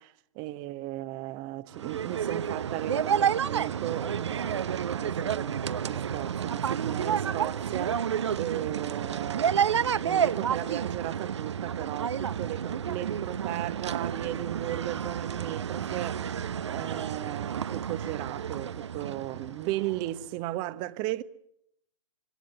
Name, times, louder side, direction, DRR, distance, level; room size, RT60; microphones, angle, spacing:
voice 1, 0.0-8.0 8.4-9.7 10.0-16.2 16.7-21.2, right 16 dB, 30° right, 1.0 m, -36 dB
sound 1, 1.7-20.2, right 8 dB, 60° right, 0.9 m, -30 dB
25.5 x 24.5 x 7.4 m
figure-of-eight pair, 115°, 17 cm